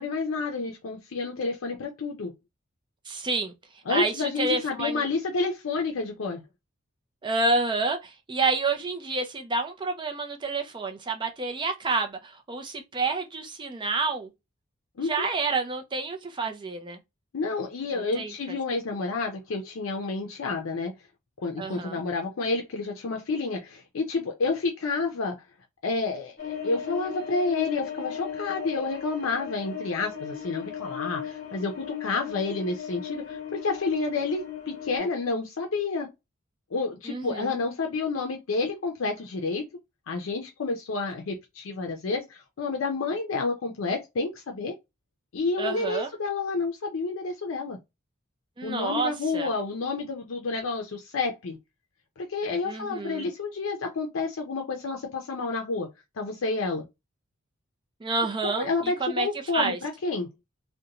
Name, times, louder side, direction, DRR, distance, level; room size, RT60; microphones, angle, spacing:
voice 1, 0.0-2.3 3.9-6.4 15.0-15.3 17.3-20.9 21.4-25.4 25.8-36.1 36.7-39.7 40.1-44.7 45.3-47.8 48.6-51.6 52.2-56.8 58.4-60.3, left 3 dB, 75° left, 0.5 m, -29 dB
voice 2, 3.1-3.5 3.9-5.0 7.2-14.3 15.0-17.0 18.1-18.3 21.6-22.0 37.1-37.6 45.6-46.1 48.6-49.5 52.6-53.3 58.0-59.3 59.5-59.8, right 3 dB, 25° right, 0.5 m, -29 dB
sound 1, 26.4-35.0, left 8 dB, 45° left, 0.9 m, -37 dB
2.5 x 2.2 x 2.8 m
head